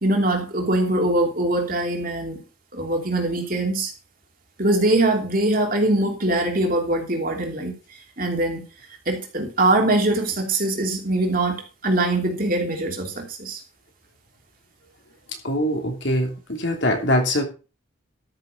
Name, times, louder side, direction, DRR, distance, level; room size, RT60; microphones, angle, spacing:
voice 1, 0.0-2.4 2.7-3.9 4.6-7.7 8.2-8.6 9.1-13.6, right 2 dB, 45° right, 2.9 m, -22 dB
voice 2, 15.4-17.4, left 1 dB, 60° left, 3.0 m, -23 dB
13.0 x 6.8 x 5.3 m
head